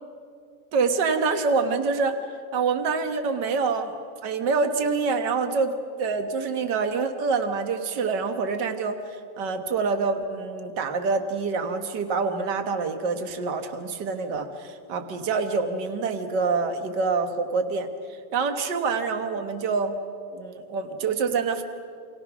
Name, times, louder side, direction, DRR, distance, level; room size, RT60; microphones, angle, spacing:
voice 1, 0.7-2.2 2.5-3.9 4.2-20.0 20.3-21.6, right 4 dB, 75° right, 7 dB, 0.9 m, -26 dB
29.0 x 25.0 x 6.1 m, 2.3 s
omnidirectional pair, 4.1 m